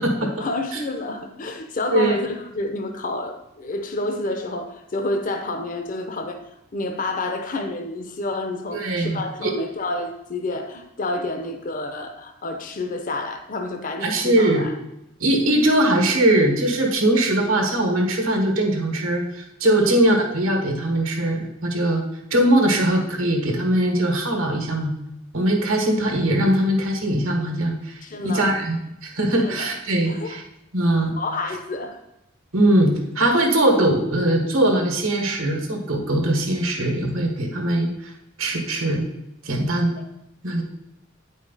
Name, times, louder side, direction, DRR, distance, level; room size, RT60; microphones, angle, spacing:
voice 1, 0.2-6.4 6.7-14.7 19.8-20.0 28.0-28.5 29.4-29.7 30.1-30.4 31.2-32.0, left 2 dB, 40° left, 6 dB, 0.6 m, -29 dB
voice 2, 8.7-9.5 14.0-14.6 15.2-22.0 22.3-24.9 25.3-27.9 28.2-28.8 29.0-30.4 30.7-31.1 32.5-38.1 38.4-39.0 39.4-40.0 40.4-40.6, right 1 dB, 85° right, 2 dB, 1.6 m, -21 dB
9.0 x 5.1 x 4.0 m, 0.85 s
head